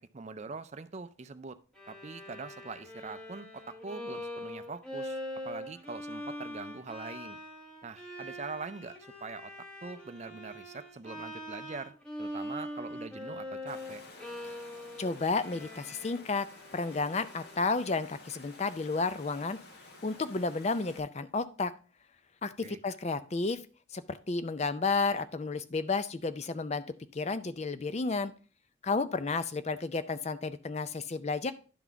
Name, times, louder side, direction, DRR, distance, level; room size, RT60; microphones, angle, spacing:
voice 1, 0.1-1.6 1.9-7.4 7.8-9.5 9.8-11.9 12.2-14.0 22.6-22.8, right 4 dB, 35° right, 12 dB, 0.4 m, -43 dB
Bowed string instrument, 1.7-17.8, left 1 dB, 5° left, 1.2 m, -43 dB
Water, 13.7-21.0, left 2 dB, 55° left, 1.2 m, -52 dB
voice 2, 15.0-16.5 16.7-19.6 20.0-21.7 22.4-23.6 23.9-26.8 27.1-28.3 28.8-31.5, left 3 dB, 35° left, 13 dB, 0.4 m, -32 dB
11.0 x 4.0 x 4.6 m, 0.37 s
head